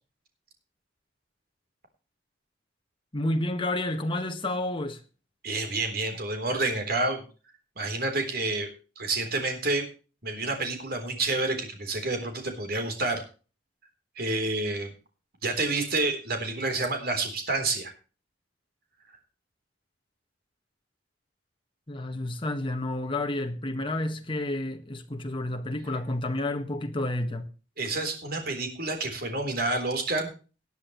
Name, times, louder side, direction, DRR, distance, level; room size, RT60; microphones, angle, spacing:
voice 1, 3.1-5.0 21.9-27.5, left 1 dB, 30° left, 1.6 m, -30 dB
voice 2, 5.4-7.2 7.8-9.9 10.2-13.2 14.2-14.9 15.4-17.9 27.8-30.3, right 2 dB, 55° right, 3.7 m, -29 dB
18.5 x 10.5 x 3.1 m
head